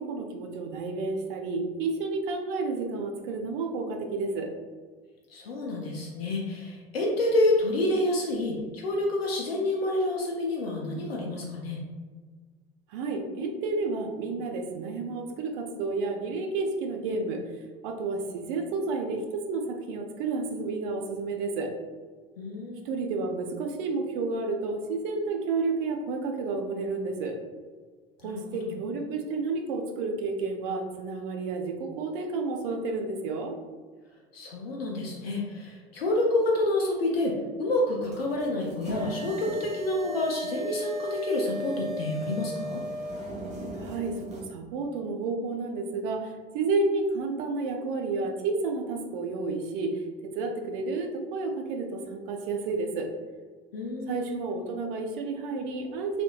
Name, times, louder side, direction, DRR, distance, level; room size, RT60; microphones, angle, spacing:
voice 1, 0.0-4.5 12.9-17.4 17.8-21.8 22.8-27.4 28.2-33.5 43.7-50.0 50.3-53.1 54.1-56.2, right 3 dB, 60° right, 3 dB, 0.6 m, -31 dB
voice 2, 5.3-11.8 22.4-22.9 28.2-28.7 34.3-42.8 53.7-54.3, left 2 dB, 80° left, -1 dB, 0.5 m, -28 dB
sound 1, 38.0-44.4, equal, 25° right, 0.9 m, -36 dB
3.3 x 2.7 x 2.3 m, 1.5 s
figure-of-eight pair, 70°, 29 cm